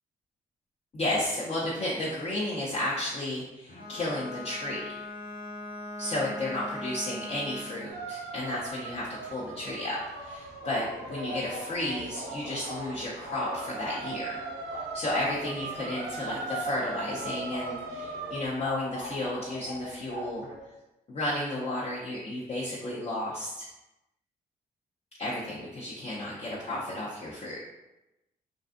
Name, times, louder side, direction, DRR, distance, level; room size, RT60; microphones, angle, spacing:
voice 1, 0.9-5.0 6.0-14.4 14.9-20.5 21.1-23.7 25.2-27.6, left 1 dB, 35° left, -7 dB, 0.6 m, -33 dB
Bowed string instrument, 3.7-7.9, left 2 dB, 90° left, 1.2 m, -40 dB
sound 1, 7.9-18.5, right 4 dB, 75° right, 0.4 m, -39 dB
sound 2, 10.2-20.6, left 1 dB, 70° left, 0.9 m, -42 dB
2.5 x 2.3 x 2.4 m, 0.96 s
supercardioid pair, 65°, 17 cm